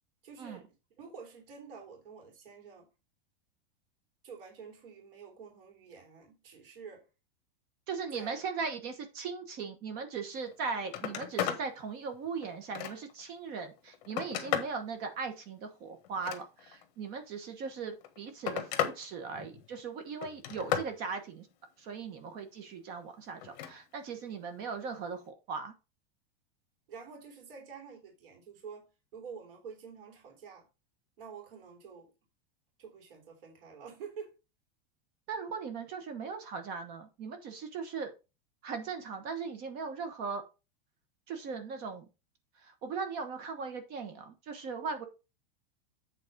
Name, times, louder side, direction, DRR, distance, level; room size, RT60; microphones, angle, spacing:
voice 1, 0.2-2.9 4.2-7.1 8.1-8.4 26.9-30.7 31.2-32.1 32.8-34.3, right 6 dB, 70° right, 3.1 m, -48 dB
voice 2, 7.9-21.5 21.8-25.7 35.3-38.1 38.6-40.4 41.3-42.1 42.6-45.1, right 5 dB, 30° right, 1.1 m, -39 dB
Telephone, 10.4-10.5 10.8-11.6 12.1-13.2 13.8-14.8 16.0-16.8 17.8-19.0 19.3-19.8 20.2-20.9 23.4-23.7 25.1-25.3, left 10 dB, 45° left, 1.4 m, -35 dB
8.2 x 4.1 x 5.2 m
supercardioid pair, 170°, 29 cm